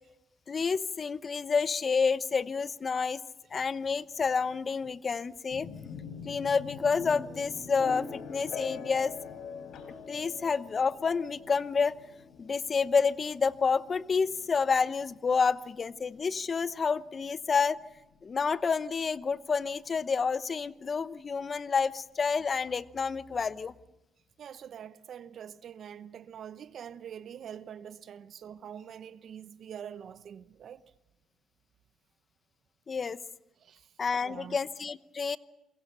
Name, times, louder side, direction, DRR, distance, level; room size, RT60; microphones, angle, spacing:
voice 1, 0.5-3.2 3.5-5.7 6.2-9.1 10.1-12.0 12.4-17.8 18.2-23.7 32.9-33.2 34.0-35.4, left 5 dB, 45° left, 0.9 m, -29 dB
sound 1, 5.5-19.3, left 5 dB, 75° left, 3.9 m, -45 dB
voice 2, 24.4-30.9 33.6-33.9 34.2-34.6, right 8 dB, 65° right, 1.0 m, -45 dB
28.5 x 22.0 x 6.8 m
supercardioid pair, 70°, 0 cm